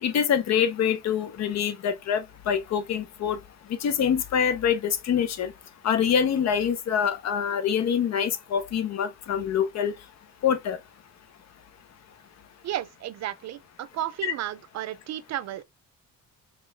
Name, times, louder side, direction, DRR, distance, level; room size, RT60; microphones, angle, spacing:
voice 1, 0.0-3.4 3.7-5.5 5.8-9.9 10.4-10.8 14.2-14.3, left 8 dB, 60° left, 0.7 m, -25 dB
voice 2, 12.6-15.6, right 12 dB, 60° right, 0.5 m, -33 dB
3.8 x 3.6 x 2.2 m
cardioid pair, 90°, 30 cm